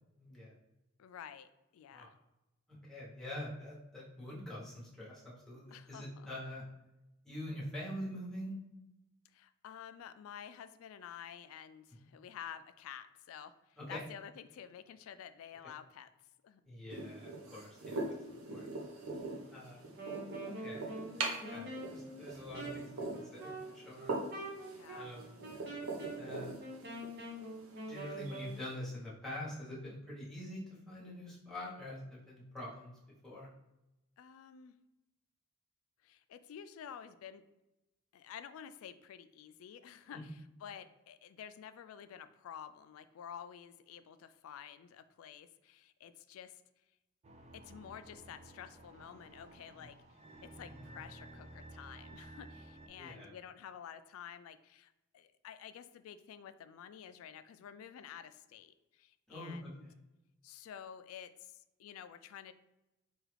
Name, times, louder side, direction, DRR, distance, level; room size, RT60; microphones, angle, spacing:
voice 1, 0.2-0.5 1.9-2.1 2.7-6.6 7.2-8.6 13.8-14.0 16.7-18.7 19.5-19.8 20.4-20.9 21.4-24.1 24.9-25.3 26.2-26.7 27.9-32.9 33.2-33.5 40.1-40.3 49.7-49.9 50.9-51.0 53.0-53.3 59.3-59.9, left 1 dB, ahead, -6 dB, 1.1 m, -45 dB
voice 2, 1.0-2.2 5.7-6.3 9.3-16.1 16.4-16.6 24.7-25.1 34.2-34.7 36.0-37.4 38.1-46.6 47.5-50.0 50.4-59.8 60.4-62.5, left 8 dB, 75° left, 13 dB, 0.3 m, -50 dB
sound 1, 16.9-28.7, right 2 dB, 80° right, 0.7 m, -43 dB
Wind instrument woodwind instrument, 19.9-28.6, right 2 dB, 50° right, 0.9 m, -45 dB
sound 2, 47.2-52.9, right 1 dB, 30° right, 0.4 m, -54 dB
4.7 x 2.3 x 3.3 m, 0.96 s
head